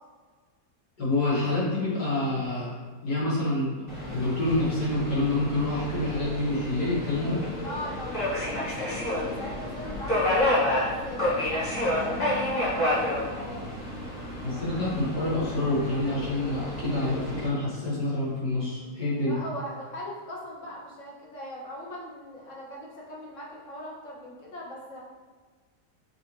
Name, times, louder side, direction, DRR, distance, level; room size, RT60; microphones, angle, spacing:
voice 1, 1.0-2.7 3.0-7.4 14.4-19.4, left 2 dB, 75° left, -8 dB, 2.1 m, -27 dB
Subway metro underground, 3.9-17.5, left 1 dB, 25° left, 1.4 m, -30 dB
voice 2, 7.6-13.7 19.3-25.0, left 1 dB, 55° left, -5 dB, 1.2 m, -40 dB
5.9 x 2.6 x 3.0 m, 1.5 s
omnidirectional pair, 1.8 m